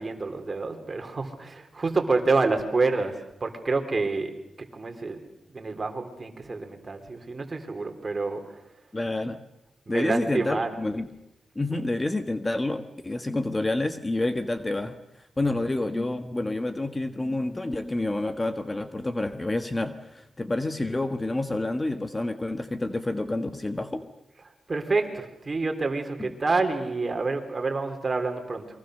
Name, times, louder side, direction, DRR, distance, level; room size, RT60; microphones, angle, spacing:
voice 1, 0.0-4.3 4.7-5.2 5.5-8.4 9.9-10.8 24.7-28.7, right 3 dB, 35° right, 5 dB, 3.7 m, -28 dB
voice 2, 8.9-9.4 9.9-11.1 11.5-15.0 15.4-24.1 26.2-26.3, left 2 dB, 20° left, 8 dB, 1.4 m, -28 dB
28.5 x 23.0 x 6.6 m, 0.81 s
cardioid pair, 95°, 0 cm